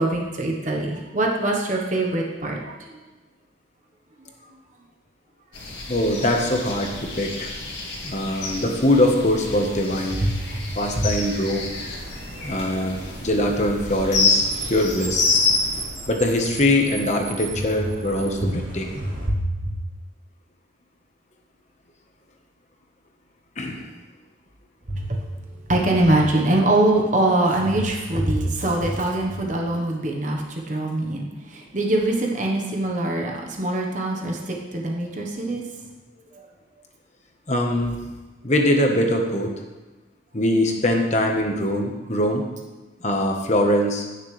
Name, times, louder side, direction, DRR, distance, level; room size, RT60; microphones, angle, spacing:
voice 1, 0.0-3.0 10.2-10.5 10.9-11.1 18.4-18.5 19.3-19.8 24.9-35.6 36.3-36.4, right 1 dB, 40° right, 0 dB, 1.2 m, -23 dB
sound 1, 5.5-15.9, left 3 dB, 70° left, 2.1 m, -28 dB
voice 2, 5.9-7.5 8.0-10.2 10.7-11.7 12.4-15.3 16.1-19.1 23.6-23.9 37.5-38.0 38.4-39.5 40.3-42.4 43.0-44.0, left 1 dB, 40° left, 2 dB, 1.2 m, -22 dB
Car, 11.7-19.3, right 2 dB, 85° right, 3.4 m, -37 dB
16.0 x 6.7 x 3.3 m, 1.2 s
head